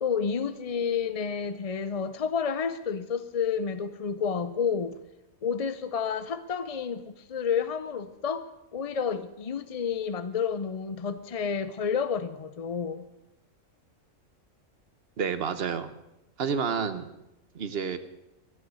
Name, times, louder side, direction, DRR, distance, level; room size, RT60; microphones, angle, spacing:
voice 1, 0.0-5.0 5.4-8.4 8.7-13.1, left 6 dB, 50° left, 13 dB, 0.4 m, -30 dB
voice 2, 15.2-15.9 16.4-17.1 17.5-18.0, right 6 dB, 50° right, 11 dB, 1.2 m, -29 dB
13.0 x 9.3 x 9.4 m, 0.89 s
omnidirectional pair, 1.4 m